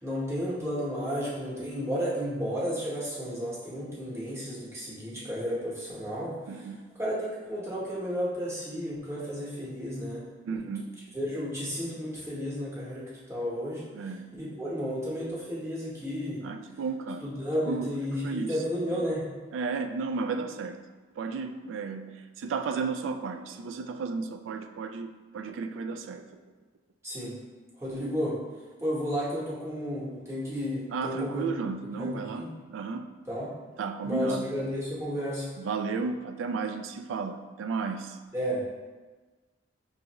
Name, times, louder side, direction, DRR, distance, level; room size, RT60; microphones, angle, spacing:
voice 1, 0.0-6.3 7.0-10.6 11.1-13.8 14.3-16.4 17.2-19.2 27.0-27.3 27.8-28.3 28.8-31.4 32.0-32.5 33.3-33.5 34.0-35.5 38.3-38.6, equal, 15° right, -7 dB, 0.8 m, -32 dB
voice 2, 6.5-6.8 10.5-10.9 13.9-14.3 16.4-17.3 17.7-17.9 18.2-18.6 19.5-20.8 21.2-26.2 30.9-33.1 33.8-34.5 35.6-38.2, right 4 dB, 85° right, 9 dB, 0.3 m, -33 dB
5.1 x 2.4 x 2.9 m, 1.3 s
head